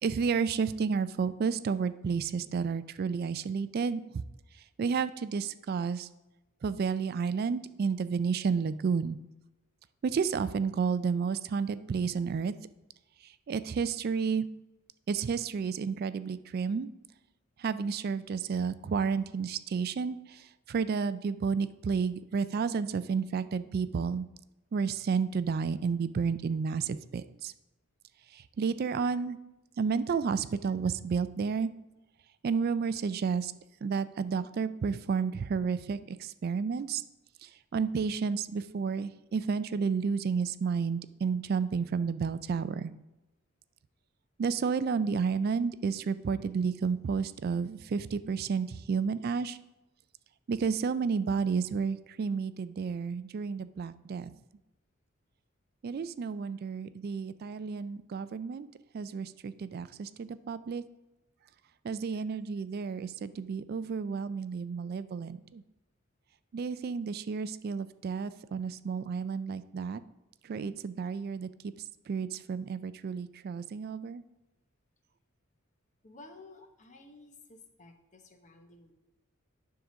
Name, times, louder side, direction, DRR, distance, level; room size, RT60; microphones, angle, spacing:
voice 1, 0.0-4.2 4.8-6.1 6.6-9.2 10.0-12.5 13.5-14.4 15.1-16.9 17.6-24.3 24.7-27.5 28.3-29.4 29.8-31.7 32.4-33.5 33.8-37.0 37.4-42.9 44.4-49.6 50.5-54.3 55.8-58.7 58.9-60.8 61.8-65.6 66.5-70.0 70.4-71.5 72.1-74.2, right 5 dB, 50° right, 14 dB, 0.3 m, -31 dB
voice 2, 76.0-78.9, left 2 dB, 35° left, 5 dB, 0.9 m, -53 dB
9.9 x 3.7 x 6.2 m, 0.98 s
head